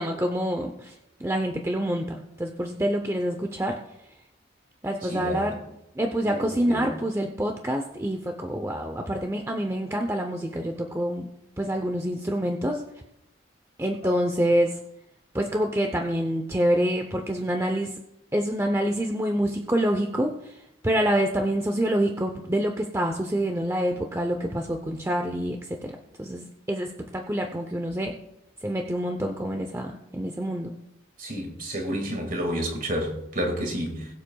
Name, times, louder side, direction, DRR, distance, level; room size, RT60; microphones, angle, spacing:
voice 1, 0.0-3.8 4.8-5.6 5.9-11.3 11.6-12.8 13.8-14.8 15.3-18.0 18.3-28.2 28.6-30.7, equal, 15° right, 0.6 m, -27 dB
voice 2, 5.0-5.4 6.2-6.9 31.2-34.1, equal, 45° right, 1.9 m, -30 dB
21.0 x 7.4 x 2.3 m
head